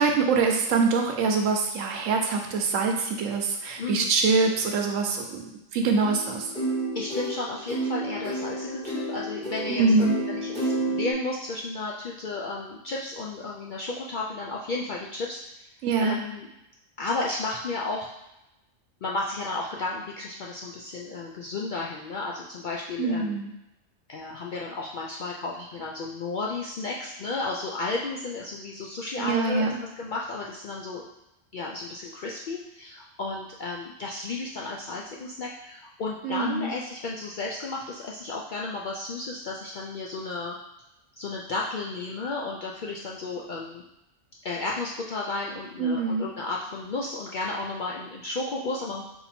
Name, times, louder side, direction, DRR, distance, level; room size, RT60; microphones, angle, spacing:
voice 1, 0.0-6.5 9.7-10.2 15.8-16.2 23.0-23.5 29.2-29.7 36.2-36.7 45.8-46.3, right 4 dB, 85° right, 3 dB, 1.1 m, -24 dB
voice 2, 3.8-4.1 6.9-15.4 16.0-16.5 17.0-18.1 19.0-23.4 24.1-31.0 31.5-40.6 41.2-43.8 44.4-49.0, left 3 dB, 65° left, -3 dB, 0.5 m, -33 dB
sound 1, 6.0-11.1, right 1 dB, 5° left, 1.1 m, -31 dB
4.2 x 2.7 x 4.2 m, 0.90 s
omnidirectional pair, 1.3 m